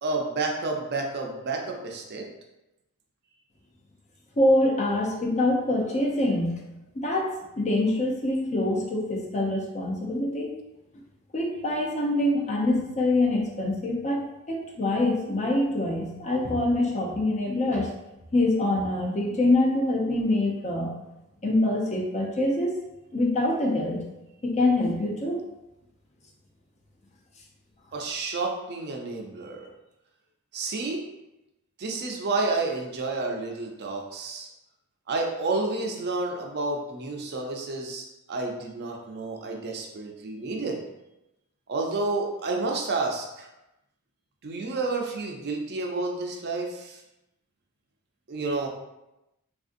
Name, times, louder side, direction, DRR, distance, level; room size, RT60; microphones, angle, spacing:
voice 1, 0.0-2.2 27.9-29.7 30.5-31.1 31.8-34.5 35.1-40.8 41.7-43.5 44.4-47.0 48.3-48.7, right 3 dB, 50° right, 1 dB, 0.5 m, -30 dB
voice 2, 4.4-6.6 6.9-7.3 7.6-10.5 11.3-17.9 18.3-20.9 21.4-22.8 23.1-24.0 24.4-25.4, left 1 dB, 30° left, 0 dB, 0.5 m, -25 dB
3.5 x 2.5 x 2.5 m, 0.93 s
head